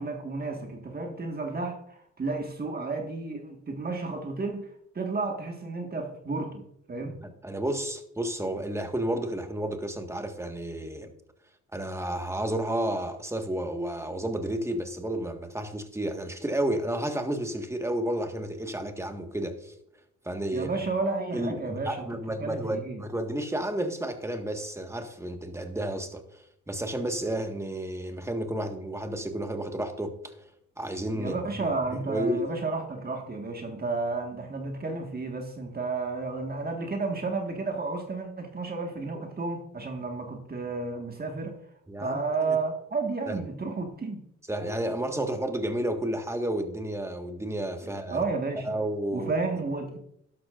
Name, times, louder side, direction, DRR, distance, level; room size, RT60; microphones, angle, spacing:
voice 1, 0.0-4.7 4.9-7.2 20.5-22.1 22.4-23.0 31.1-41.5 42.0-44.2 48.1-48.7 49.1-50.0, right 3 dB, 30° right, 3 dB, 1.7 m, -32 dB
voice 2, 7.2-11.1 11.7-19.7 20.2-20.8 21.3-31.3 31.6-32.5 41.9-42.6 43.3-43.4 44.5-48.2 48.6-49.3, right 1 dB, 10° right, 5 dB, 1.6 m, -31 dB
12.0 x 12.0 x 2.6 m, 0.74 s
cardioid pair, 90°, 30 cm